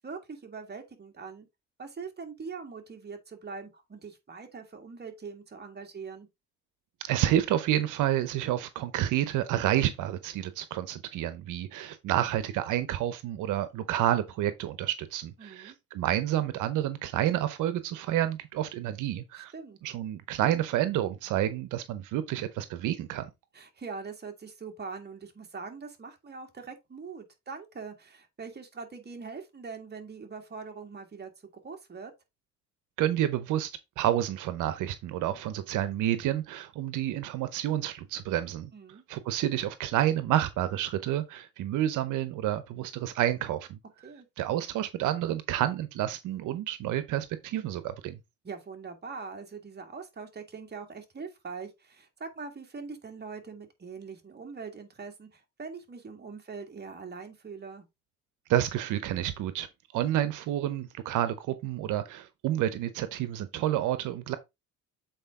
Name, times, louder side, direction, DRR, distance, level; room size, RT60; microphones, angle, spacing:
voice 1, 0.0-1.5 1.8-6.3 15.4-15.8 19.4-19.8 23.5-31.3 31.6-32.1 38.7-39.0 44.0-44.3 48.4-57.8, right 5 dB, 35° right, 2.1 m, -42 dB
voice 2, 7.0-19.5 19.8-23.3 33.0-38.7 39.1-43.8 44.4-48.2 58.5-59.7 59.9-64.4, right 12 dB, 90° right, 0.8 m, -29 dB
7.9 x 4.3 x 3.6 m
cardioid pair, 90°, 30 cm